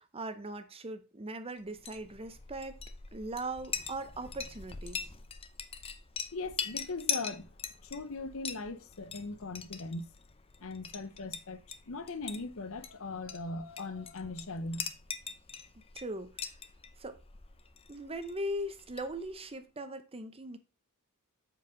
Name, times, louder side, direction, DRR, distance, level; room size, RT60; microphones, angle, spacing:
voice 1, 0.0-2.8 3.1-5.1 15.9-16.5 17.0-17.2 17.9-20.6, right 1 dB, 25° right, 0.8 m, -39 dB
Chink clink, 1.7-19.5, left 6 dB, 25° left, 0.7 m, -42 dB
voice 2, 6.3-7.5 7.8-10.1 10.6-11.6 11.9-14.9, left 3 dB, 65° left, 0.8 m, -39 dB
7.9 x 4.7 x 5.1 m
head